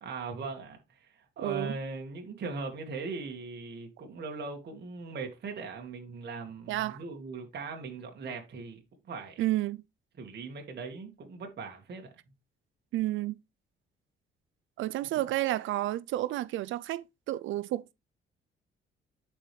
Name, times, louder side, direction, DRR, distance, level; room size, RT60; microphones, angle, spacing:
voice 1, 0.0-9.4 10.2-12.1, right 4 dB, 55° right, 1.9 m, -40 dB
voice 2, 1.4-1.8 6.7-7.0 9.4-9.8 12.9-13.4 14.8-17.9, right 15 dB, 75° right, 0.4 m, -31 dB
9.9 x 4.9 x 3.3 m
cardioid pair, 90°, 20 cm